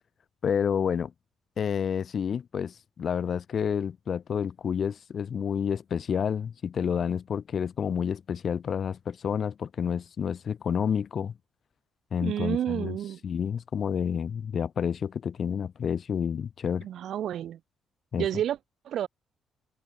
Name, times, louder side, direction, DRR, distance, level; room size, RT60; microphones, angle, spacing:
voice 1, 0.4-1.1 1.6-11.3 12.1-13.0 13.2-16.9 18.1-18.3, left 7 dB, 55° left, 0.8 m, -29 dB
voice 2, 12.2-13.2 16.8-17.6 18.2-18.6 18.8-19.1, right 10 dB, 70° right, 3.1 m, -30 dB
cardioid pair, 90°, 0 cm